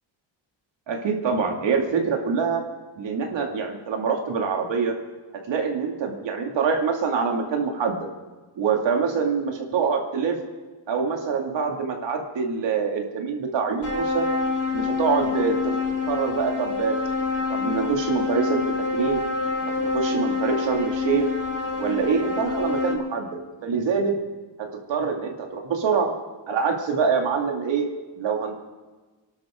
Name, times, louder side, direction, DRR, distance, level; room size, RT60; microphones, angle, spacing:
voice 1, 0.9-2.6 3.0-4.9 5.5-8.1 8.6-10.4 10.9-14.3 14.7-15.7 16.0-16.9 17.5-18.6 18.9-19.2 19.8-21.3 21.8-23.3 23.6-24.2 24.6-26.1 26.5-27.9 28.2-28.5, right 5 dB, 65° right, 2 dB, 2.6 m, -25 dB
sound 1, 13.8-22.9, left 4 dB, 30° left, 2.8 m, -27 dB
29.0 x 12.0 x 3.8 m, 1.3 s
wide cardioid pair, 180°, 47 cm